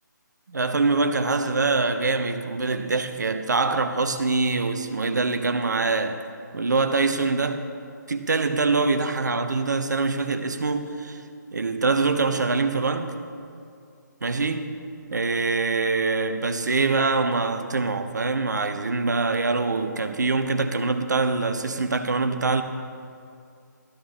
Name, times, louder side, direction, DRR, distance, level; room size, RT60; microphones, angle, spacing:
voice 1, 0.5-6.2 6.5-7.6 8.1-11.2 11.5-13.1 14.2-14.7 15.1-22.6, right 3 dB, 65° right, 1.0 m, -24 dB
15.5 x 13.0 x 3.7 m
figure-of-eight pair, 145°, 10 cm